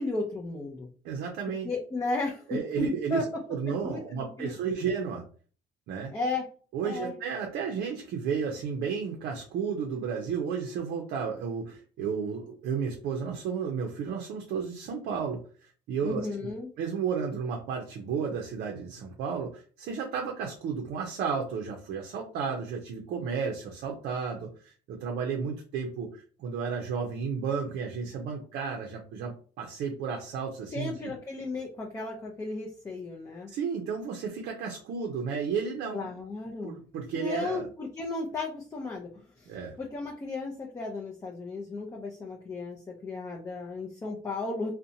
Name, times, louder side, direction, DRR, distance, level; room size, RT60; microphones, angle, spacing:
voice 1, 0.0-0.9 1.6-3.3 3.8-4.0 4.4-4.5 6.1-6.5 6.8-7.1 16.0-16.7 30.7-33.5 35.9-36.8 37.1-44.7, left 3 dB, 20° left, 0 dB, 0.5 m, -34 dB
voice 2, 1.0-1.7 2.5-3.2 3.5-5.2 5.9-6.1 6.7-16.3 16.8-31.1 33.5-36.1 36.6-37.7 39.5-39.8, right 6 dB, 70° right, 2 dB, 0.5 m, -33 dB
2.6 x 2.1 x 2.6 m, 0.41 s
cardioid pair, 110°, 17 cm